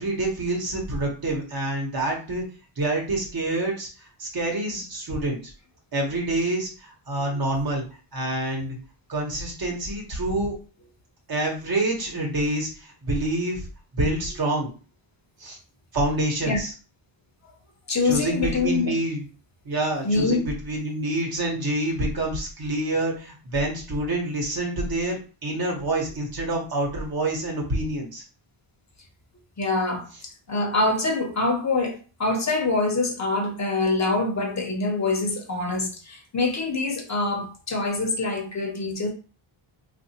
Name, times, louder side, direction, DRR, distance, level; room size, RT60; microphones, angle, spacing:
voice 1, 0.0-2.4 2.8-3.9 4.2-5.4 5.9-7.8 8.1-8.8 9.1-10.5 11.3-13.6 13.9-14.7 15.4-15.6 15.9-16.7 18.0-19.2 19.6-28.2, right 1 dB, 45° right, 0 dB, 1.1 m, -27 dB
voice 2, 17.9-18.9 20.0-20.5 29.6-30.1 30.5-39.1, left 3 dB, 35° left, 1 dB, 0.7 m, -25 dB
3.6 x 2.5 x 2.8 m, 0.35 s
wide cardioid pair, 150°, 50 cm